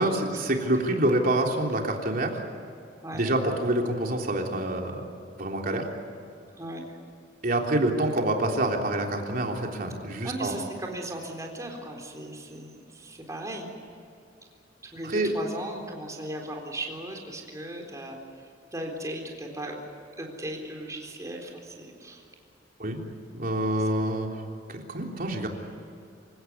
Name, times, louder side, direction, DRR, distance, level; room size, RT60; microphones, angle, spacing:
voice 1, 0.0-2.4 3.1-5.0 5.4-5.9 7.4-10.5 15.0-15.3 22.8-23.0 23.3-24.3 24.7-25.5, right 1 dB, 50° right, 1 dB, 3.5 m, -26 dB
voice 2, 10.2-13.7 14.8-18.2 18.7-19.8 20.2-22.2, right 1 dB, 20° right, 1 dB, 3.8 m, -37 dB
27.5 x 17.0 x 9.6 m, 2.7 s
head